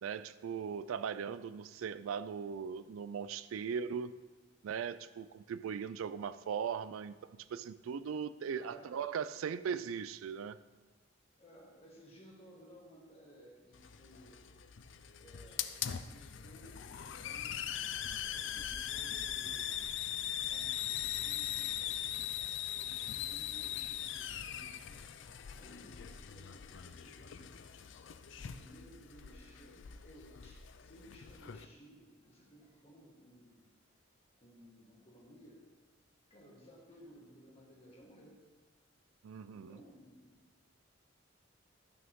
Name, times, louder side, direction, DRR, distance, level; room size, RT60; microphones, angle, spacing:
voice 1, 0.0-4.2 4.6-7.2 7.5-10.6 39.2-39.8, right 7 dB, 85° right, 14 dB, 0.3 m, -39 dB
voice 2, 8.5-9.8 11.3-14.5 15.2-17.8 18.3-19.8 20.4-22.2 22.7-25.2 25.5-27.5 28.0-33.7 34.4-35.7 36.3-38.4 39.5-40.4, equal, 30° left, -3 dB, 1.8 m, -58 dB
Hiss, 13.7-31.6, left 10 dB, 60° left, 0.4 m, -41 dB
12.5 x 6.2 x 3.6 m, 1.3 s
head